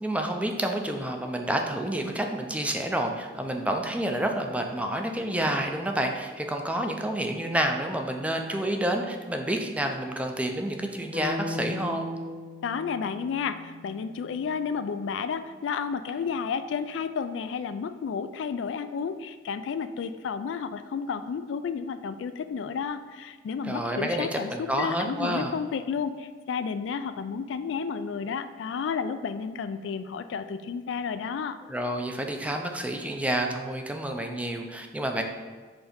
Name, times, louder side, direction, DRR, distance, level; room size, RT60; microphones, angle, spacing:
voice 1, 0.0-12.1 23.6-25.5 31.7-35.2, right 1 dB, 5° right, 3 dB, 0.5 m, -29 dB
sound 1, 11.1-15.2, left 2 dB, 40° right, 1.4 m, -38 dB
voice 2, 12.6-31.6, left 6 dB, 75° left, 11 dB, 0.3 m, -32 dB
5.0 x 3.7 x 5.1 m, 1.5 s
head